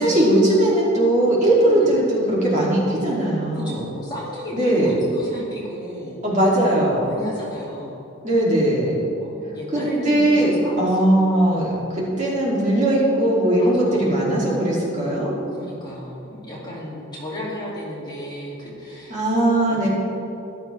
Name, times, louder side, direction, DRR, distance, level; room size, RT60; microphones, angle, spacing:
voice 1, 0.0-3.8 4.5-5.0 6.2-7.1 8.2-9.0 9.7-15.3 19.1-19.9, right 1 dB, 35° right, -6 dB, 2.8 m, -19 dB
voice 2, 3.5-6.2 7.0-8.0 9.2-11.9 13.6-14.2 15.5-19.2 19.6-19.9, equal, 20° left, -6 dB, 2.4 m, -33 dB
14.5 x 12.0 x 3.4 m, 3.0 s
head